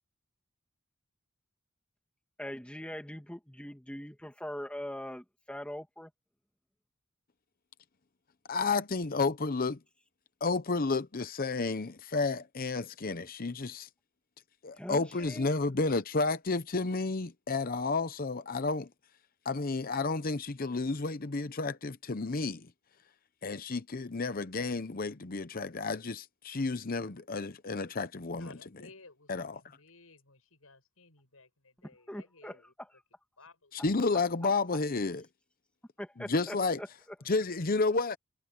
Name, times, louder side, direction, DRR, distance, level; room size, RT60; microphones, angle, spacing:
voice 1, 2.4-6.1 14.7-15.5 31.8-33.0 34.1-34.5 36.0-37.2, equal, 5° left, 2.4 m, -42 dB
voice 2, 8.5-9.8 10.4-13.9 14.6-18.9 19.4-22.7 23.4-28.5 29.3-29.6 33.7-35.2 36.3-36.8 37.3-38.2, left 3 dB, 45° left, 0.8 m, -31 dB
voice 3, 28.3-32.7 33.4-33.8, left 3 dB, 90° left, 7.4 m, -57 dB
head